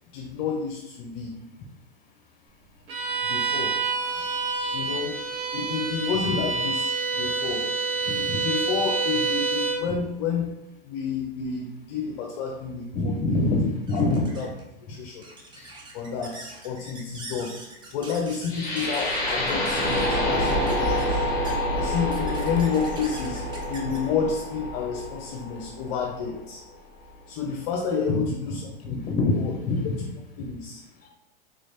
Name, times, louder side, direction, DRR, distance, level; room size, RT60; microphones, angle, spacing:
voice 1, 0.1-1.4 3.2-3.8 4.1-4.4 4.7-5.2 5.5-7.7 8.1-10.5 10.8-13.3 13.9-14.1 14.4-14.5 14.8-15.3 15.5-17.5 17.9-21.3 21.8-23.4 23.7-26.6 27.3-29.0 29.4-29.5 29.8-29.9 30.4-30.8, left 6 dB, 50° left, 1 dB, 0.6 m, -30 dB
Bowed string instrument, 2.9-9.9, right 4 dB, 70° right, 0.8 m, -27 dB
voice 2, 8.1-8.4 12.9-14.3 28.1-28.2 28.9-29.8 31.0-31.1, left 2 dB, 30° left, 2 dB, 1.0 m, -25 dB
sound 1, 13.8-25.6, right 2 dB, 15° right, 0.5 m, -45 dB
sound 2, 18.5-26.5, left 1 dB, 10° left, 1.3 m, -27 dB
3.6 x 3.1 x 2.8 m, 0.88 s
hypercardioid pair, 115°, 29 cm